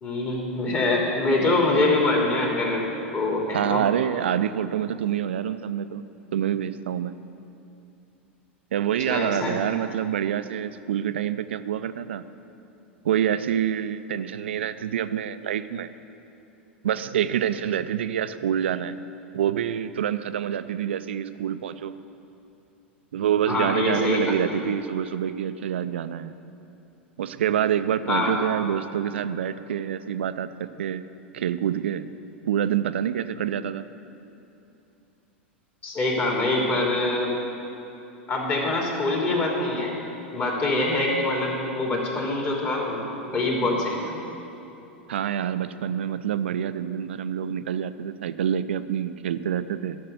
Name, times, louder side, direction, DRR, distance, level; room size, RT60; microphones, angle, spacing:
voice 1, 0.0-2.8 3.1-3.8 9.1-9.6 23.5-24.3 28.1-28.3 35.8-37.3 38.3-39.9 40.3-44.2, left 2 dB, 35° left, -2 dB, 3.0 m, -24 dB
voice 2, 3.5-6.0 6.3-7.2 8.7-12.2 13.0-15.9 16.8-19.0 19.3-22.0 23.1-26.4 27.2-31.1 31.3-32.1 32.5-33.9 45.1-50.0, right 9 dB, 70° right, 13 dB, 0.4 m, -27 dB
12.0 x 6.6 x 8.1 m, 2.8 s
figure-of-eight pair, 90°, 6 cm